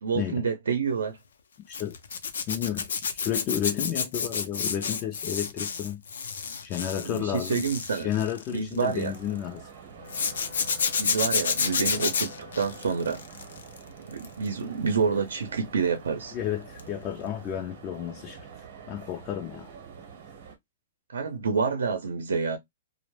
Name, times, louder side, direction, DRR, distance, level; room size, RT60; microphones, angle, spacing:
voice 1, 0.0-1.2 7.0-8.1 8.5-9.1 11.0-12.3 12.5-13.2 14.0-16.3 21.1-22.6, right 5 dB, 90° right, 0.6 m, -28 dB
Zipper (clothing), 1.7-9.2 10.1-13.8 14.1-14.5 16.8-16.9 17.2-17.3, left 6 dB, 80° left, 0.5 m, -30 dB
voice 2, 2.5-6.0 6.6-7.7 8.0-9.7 16.3-18.5 18.9-19.7, left 10 dB, 25° left, 0.3 m, -32 dB
sound 1, 8.8-20.6, right 6 dB, 50° right, 0.8 m, -47 dB
Wind instrument woodwind instrument, 9.9-13.3, left 7 dB, 55° left, 0.8 m, -49 dB
2.2 x 2.0 x 3.1 m
hypercardioid pair, 150°, 0 cm